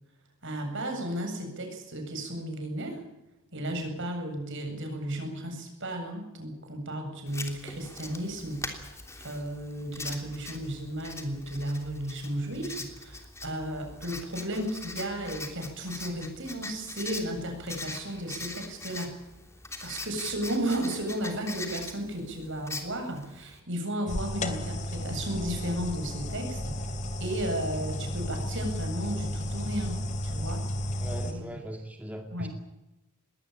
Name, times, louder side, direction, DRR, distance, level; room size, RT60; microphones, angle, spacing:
voice 1, 0.4-3.0 3.5-19.1 19.8-26.8 27.2-31.0 31.3-31.5 32.3-32.5, right 1 dB, 60° right, 5 dB, 7.9 m, -34 dB
Writing, 7.3-23.6, left 3 dB, 15° left, 3.2 m, -42 dB
sound 1, 24.1-31.3, left 1 dB, 35° left, 2.8 m, -33 dB
voice 2, 31.0-32.5, right 1 dB, 5° right, 3 dB, 2.2 m, -39 dB
21.5 x 18.5 x 8.9 m, 0.95 s
head